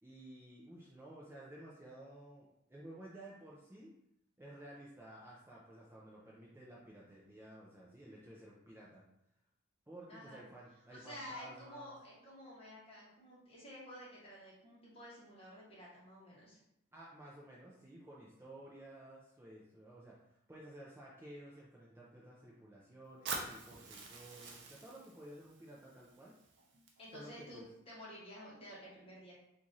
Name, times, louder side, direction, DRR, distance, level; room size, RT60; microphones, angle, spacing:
voice 1, 0.0-3.9 4.4-9.0 9.9-11.9 16.9-26.3 27.1-27.7, right 1 dB, 10° right, -5 dB, 0.4 m, -54 dB
voice 2, 10.1-10.4 10.9-16.6 27.0-29.3, equal, 30° left, -7 dB, 1.2 m, -51 dB
Fire, 23.3-27.3, right 3 dB, 55° right, 0.6 m, -47 dB
2.9 x 2.5 x 3.8 m, 0.79 s
head